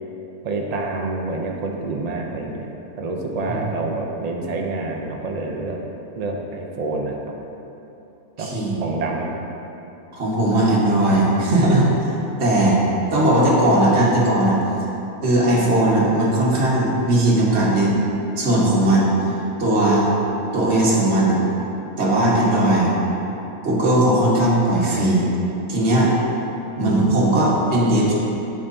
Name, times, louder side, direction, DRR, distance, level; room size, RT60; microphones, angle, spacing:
voice 1, 0.4-2.7 3.0-5.8 6.2-7.2 8.4-8.5 8.8-9.4 26.8-27.2, right 2 dB, 65° right, 0 dB, 0.4 m, -27 dB
voice 2, 8.4-8.8 10.1-11.9 12.4-12.8 13.1-14.6 15.2-18.0 18.4-19.1 19.6-20.1 20.5-21.4 22.0-22.9 23.6-25.2 25.7-26.1 26.8-28.1, right 1 dB, 45° right, -6 dB, 1.6 m, -18 dB
8.9 x 6.4 x 2.7 m, 3.0 s
omnidirectional pair, 1.6 m